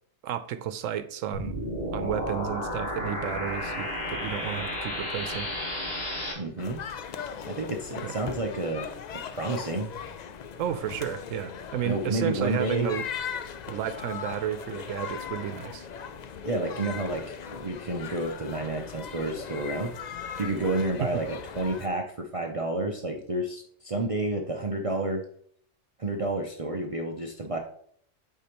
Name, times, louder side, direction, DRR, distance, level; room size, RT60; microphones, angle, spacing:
voice 1, 0.2-1.6 1.9-5.5 8.0-8.1 10.6-13.0 13.7-15.9 21.0-21.2, right 10 dB, 85° right, 12 dB, 1.0 m, -32 dB
sound 1, 1.3-6.3, left 1 dB, 50° left, 2.0 m, -32 dB
voice 2, 6.3-6.8 7.4-8.9 9.3-9.9 11.8-12.9 16.4-25.2 26.0-27.6, right 2 dB, 40° right, 2 dB, 0.5 m, -30 dB
sound 2, 6.6-21.9, left 7 dB, 85° left, 0.3 m, -39 dB
8.4 x 4.6 x 2.9 m, 0.63 s
omnidirectional pair, 1.3 m